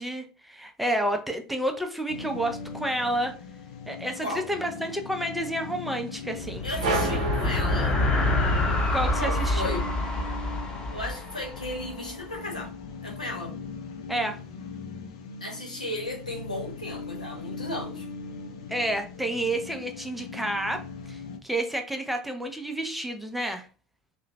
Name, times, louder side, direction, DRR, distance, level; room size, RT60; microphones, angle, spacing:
voice 1, 0.0-3.3 3.9-6.6 8.9-9.8 14.1-14.4 18.7-23.7, right 1 dB, 5° right, 0.5 m, -30 dB
sound 1, 2.1-21.4, left 4 dB, 65° left, 0.4 m, -40 dB
sound 2, 6.3-12.0, left 1 dB, 30° left, 1.0 m, -27 dB
voice 2, 6.6-8.0 9.2-9.9 10.9-12.7 13.0-13.5 15.4-18.1, left 1 dB, 90° left, 0.8 m, -35 dB
sound 3, 6.8-8.6, right 3 dB, 70° right, 0.6 m, -30 dB
2.8 x 2.1 x 2.6 m
figure-of-eight pair, 70°, 4 cm